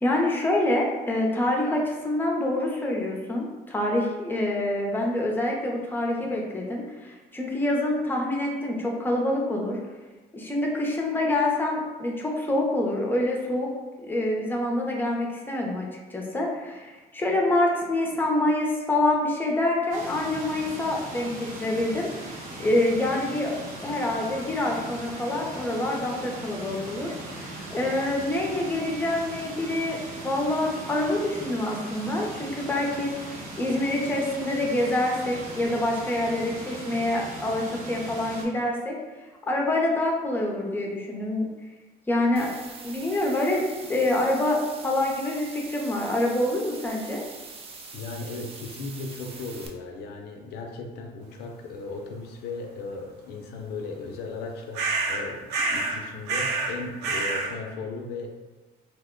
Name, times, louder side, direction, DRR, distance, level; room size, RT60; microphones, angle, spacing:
voice 1, 0.0-9.8 10.3-13.7 14.1-22.1 22.6-23.5 23.8-30.0 30.2-33.2 33.6-39.0 39.5-41.5 42.1-42.5 42.8-47.2, left 1 dB, 10° left, -1 dB, 0.6 m, -26 dB
sound 1, 19.9-38.4, right 2 dB, 55° right, 1.0 m, -39 dB
sound 2, 42.4-49.7, right 4 dB, 35° right, 0.5 m, -43 dB
voice 2, 47.9-58.3, left 3 dB, 75° left, 3 dB, 0.5 m, -36 dB
sound 3, 54.7-55.2 55.5-56.0 56.3-56.8 57.0-57.5, right 3 dB, 85° right, 0.6 m, -27 dB
2.9 x 2.1 x 3.6 m, 1.2 s
cardioid pair, 110°, 17 cm